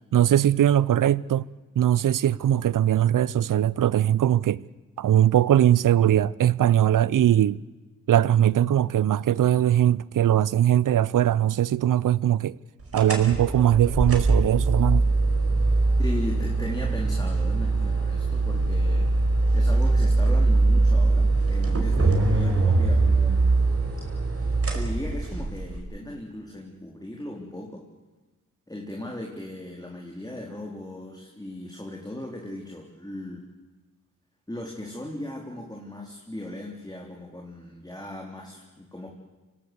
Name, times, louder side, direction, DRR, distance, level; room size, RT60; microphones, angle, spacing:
voice 1, 0.1-1.5 1.8-4.6 5.0-7.6 8.1-12.6 12.9-15.0, right 11 dB, 75° right, 0.6 m, -20 dB
sound 1, 12.9-25.8, right 3 dB, 45° right, 5.0 m, -22 dB
voice 2, 16.0-19.1 19.5-23.5 24.7-27.9 28.7-33.5 34.5-39.1, left 1 dB, 10° left, 4.1 m, -37 dB
25.0 x 17.5 x 8.2 m
cardioid pair, 45°, 32 cm